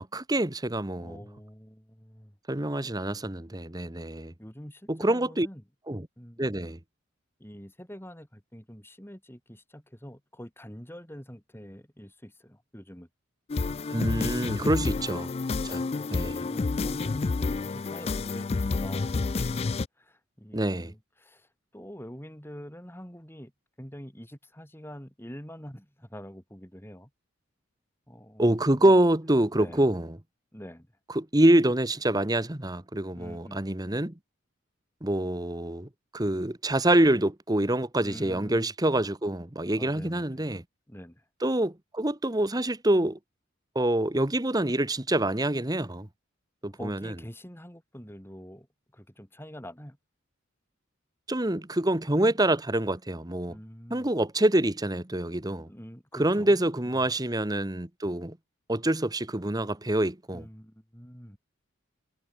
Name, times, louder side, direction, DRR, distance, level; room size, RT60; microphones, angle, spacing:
voice 1, 0.0-1.2 2.5-4.3 4.9-5.5 5.9-6.1 6.4-6.8 13.9-15.3 15.6-15.8 16.1-16.4 20.5-20.9 28.4-30.1 31.1-34.1 35.0-40.6 41.4-43.2 43.7-46.1 46.6-47.1 51.3-53.5 53.9-55.7 56.2-58.4 58.7-60.4, right 1 dB, 20° right, 1.3 m, -26 dB
voice 2, 1.0-2.4 4.4-5.6 6.2-6.4 7.4-13.1 14.5-14.9 16.0-21.5 21.7-23.5 23.8-27.1 28.1-28.9 29.5-29.9 30.5-30.9 33.1-33.6 38.0-38.7 39.8-40.5 40.9-41.2 46.8-48.7 48.9-50.0 53.5-54.1 55.4-57.1 60.3-61.4, equal, 10° left, 5.0 m, -45 dB
sound 1, 13.5-19.9, left 3 dB, 30° left, 0.3 m, -29 dB
head